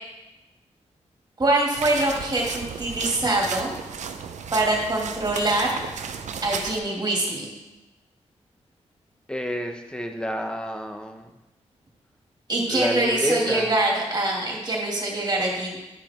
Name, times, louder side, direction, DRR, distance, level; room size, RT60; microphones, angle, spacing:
voice 1, 1.4-3.7 4.5-5.7 6.4-7.5 12.5-15.8, right 2 dB, 35° right, -2 dB, 2.6 m, -24 dB
sound 1, 1.7-6.8, right 6 dB, 85° right, 0.6 m, -34 dB
voice 2, 9.3-11.3 12.7-13.7, equal, 5° left, 5 dB, 1.0 m, -29 dB
11.0 x 5.1 x 4.4 m, 1.0 s
cardioid pair, 80°, 12 cm